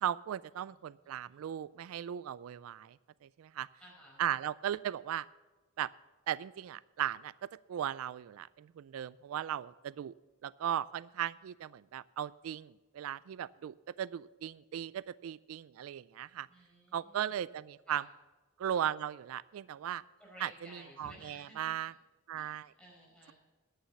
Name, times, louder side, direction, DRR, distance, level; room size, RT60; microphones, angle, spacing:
voice 1, 0.0-3.7 4.2-5.3 5.8-5.9 6.3-10.1 10.4-16.5 16.9-18.0 18.6-20.0 20.4-21.9 22.3-22.7, right 10 dB, 85° right, 19 dB, 0.3 m, -37 dB
voice 2, 3.8-4.2 16.5-17.4 17.9-18.0 20.2-21.9 22.3-23.3, equal, 5° left, -3 dB, 5.1 m, -55 dB
11.0 x 9.0 x 6.9 m, 1.2 s
head